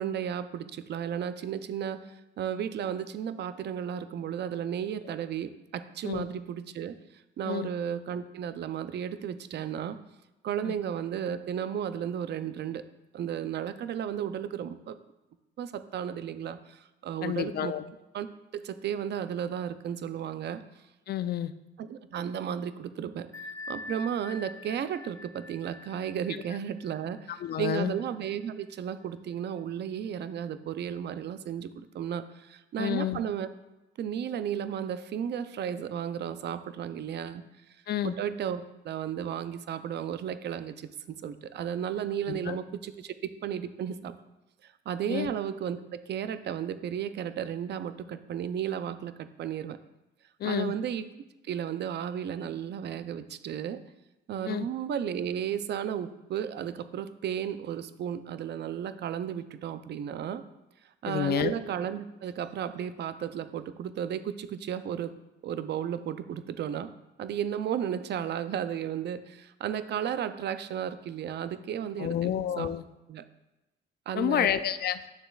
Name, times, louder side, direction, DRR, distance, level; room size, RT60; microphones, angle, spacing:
voice 1, 0.0-7.0 7.4-10.0 10.4-12.8 13.1-15.0 15.6-17.7 18.1-18.3 18.5-20.6 21.8-23.3 23.7-33.5 34.0-37.4 38.0-44.2 44.9-49.8 50.4-51.1 51.4-53.8 54.3-60.4 61.0-65.1 65.4-66.9 67.2-72.7 73.1-73.2 74.1-74.5, right 9 dB, 60° right, 12 dB, 0.5 m, -34 dB
voice 2, 17.2-17.8 21.1-21.5 27.3-27.9 32.8-33.2 37.9-38.1 42.3-42.6 45.1-45.3 50.4-50.7 54.5-54.7 61.1-61.5 72.0-72.8 74.2-75.0, left 10 dB, 55° left, 12 dB, 0.4 m, -29 dB
Bell, 23.3-28.8, left 3 dB, 15° left, 1.1 m, -45 dB
9.7 x 6.7 x 2.4 m, 0.99 s
cardioid pair, 90°, 20 cm